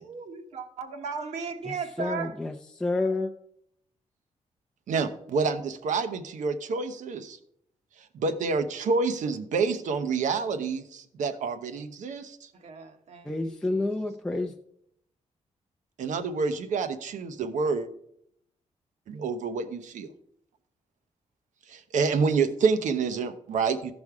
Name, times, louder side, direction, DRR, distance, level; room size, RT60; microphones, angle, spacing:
voice 1, 0.0-2.4 12.5-13.9, right 5 dB, 65° right, 1.0 m, -37 dB
voice 2, 1.7-3.3 13.2-14.5, left 2 dB, 5° left, 0.4 m, -29 dB
voice 3, 4.9-7.4 8.0-12.5 16.0-17.9 19.1-20.1 21.7-23.9, right 4 dB, 85° right, 0.8 m, -28 dB
14.0 x 5.3 x 4.8 m
wide cardioid pair, 170°, 12 cm